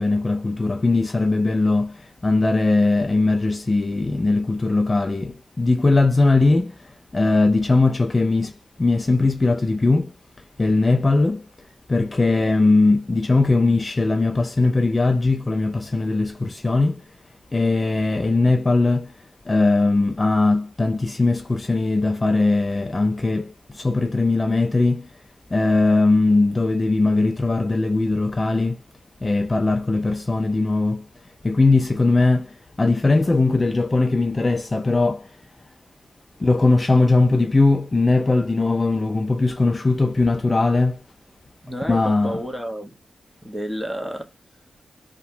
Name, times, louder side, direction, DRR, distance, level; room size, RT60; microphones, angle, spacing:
voice 1, 0.0-6.7 7.1-8.5 8.8-10.1 10.6-11.4 11.9-17.0 17.5-19.1 19.5-25.1 25.5-28.8 29.2-31.0 31.4-35.3 36.4-41.0 41.9-42.4, left 3 dB, 25° left, 0.3 m, -20 dB
voice 2, 41.6-43.0 43.4-44.3, equal, ahead, 0.8 m, -30 dB
2.7 x 2.2 x 2.6 m
wide cardioid pair, 100°, 0 cm